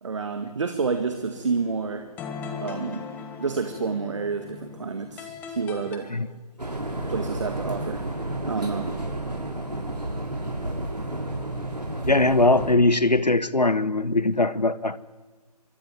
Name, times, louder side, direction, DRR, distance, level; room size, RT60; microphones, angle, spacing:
voice 1, 0.0-2.1 2.6-3.1 3.4-6.1 7.1-8.0 8.4-8.9, right 5 dB, 45° right, 1.9 m, -29 dB
sound 1, 0.9-6.0, left 5 dB, 10° left, 1.4 m, -39 dB
sound 2, 6.6-12.7, right 1 dB, 80° right, 6.3 m, -31 dB
voice 2, 12.1-15.0, left 2 dB, 85° left, 1.5 m, -21 dB
25.5 x 23.5 x 9.3 m
figure-of-eight pair, 150°, 21 cm